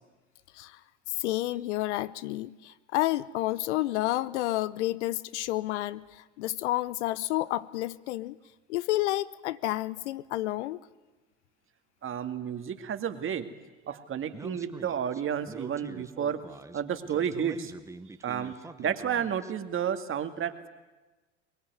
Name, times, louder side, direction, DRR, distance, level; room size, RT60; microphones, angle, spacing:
voice 1, 1.1-8.4 8.7-10.8, left 16 dB, 75° left, 0.8 m, -30 dB
voice 2, 12.0-13.5 13.8-16.4 16.7-17.7 18.2-20.7, right 8 dB, 35° right, 2.1 m, -31 dB
Speech, 14.3-19.5, right 3 dB, 10° right, 0.9 m, -45 dB
22.5 x 21.0 x 9.4 m
hypercardioid pair, 85°, 35 cm